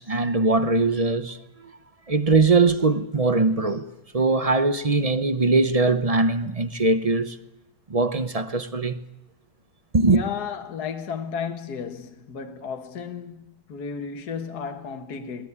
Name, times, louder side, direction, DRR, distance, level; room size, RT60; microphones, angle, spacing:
voice 1, 0.0-1.4 2.1-3.9 4.1-7.4 7.9-9.0 9.9-10.2, right 3 dB, 35° right, 0.5 m, -21 dB
voice 2, 10.1-15.5, left 6 dB, 55° left, 2.0 m, -33 dB
21.0 x 19.0 x 9.7 m
omnidirectional pair, 2.1 m